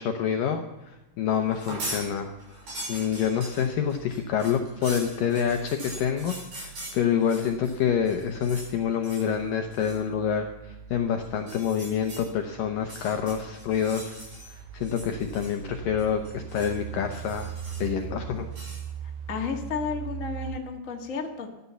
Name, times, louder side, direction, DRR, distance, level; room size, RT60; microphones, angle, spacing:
voice 1, 0.0-2.3 2.9-14.2 14.5-17.5 17.8-18.5, left 8 dB, 80° left, 5 dB, 2.0 m, -27 dB
sound 1, 1.5-2.0 2.4-7.8 8.0-8.7 9.0-9.3 9.7-10.0 11.3-12.2 12.8-14.5 14.8-15.7 16.0-16.8 17.1-18.0 18.5-18.8, right 1 dB, 40° right, 8.1 m, -41 dB
sound 2, 1.5-20.6, right 9 dB, 85° right, 3.0 m, -42 dB
voice 2, 19.3-21.5, left 5 dB, 50° left, 1 dB, 0.9 m, -32 dB
15.5 x 12.5 x 7.0 m, 1.0 s
omnidirectional pair, 5.1 m